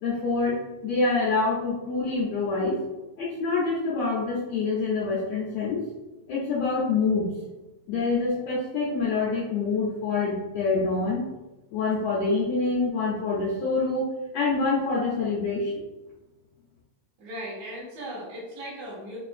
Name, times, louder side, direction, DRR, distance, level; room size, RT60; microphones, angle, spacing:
voice 1, 0.0-2.8 3.2-5.8 6.3-7.3 7.9-11.2 11.7-14.1 14.3-15.8, left 3 dB, 85° left, -6 dB, 1.5 m, -26 dB
voice 2, 17.2-19.2, equal, 70° right, -12 dB, 2.6 m, -37 dB
5.9 x 2.5 x 2.4 m, 1.1 s
omnidirectional pair, 3.9 m